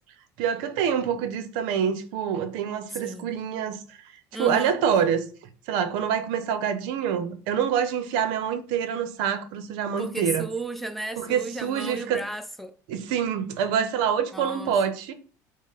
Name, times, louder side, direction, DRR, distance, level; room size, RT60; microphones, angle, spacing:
voice 1, 0.4-4.0 4.4-5.3 5.7-10.5 11.2-12.2 12.9-15.1, right 8 dB, 75° right, 0.6 m, -26 dB
voice 2, 2.9-3.3 4.3-4.8 10.0-12.7 14.3-14.7, right 2 dB, ahead, 0.4 m, -34 dB
5.2 x 2.0 x 3.7 m
supercardioid pair, 110°, 8 cm